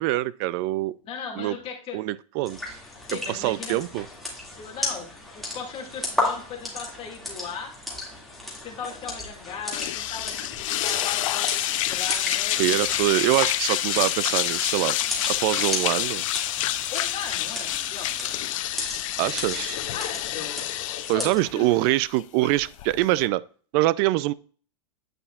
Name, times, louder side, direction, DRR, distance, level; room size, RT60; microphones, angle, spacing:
voice 1, 0.0-0.9 1.4-1.6 1.9-2.8 3.1-4.1 12.6-14.9 15.3-16.2 19.2-19.8 21.1-23.4 23.7-24.3, right 17 dB, 45° right, 0.4 m, -24 dB
voice 2, 1.0-2.0 3.0-3.8 4.6-5.1 5.4-7.7 8.6-12.8 16.9-18.3 19.9-20.7 21.1-21.8, left 6 dB, 30° left, 2.2 m, -37 dB
sound 1, 2.5-21.5, left 2 dB, ahead, 2.2 m, -35 dB
sound 2, 9.7-23.3, left 14 dB, 65° left, 0.6 m, -28 dB
9.0 x 5.7 x 2.4 m
hypercardioid pair, 125°, 18 cm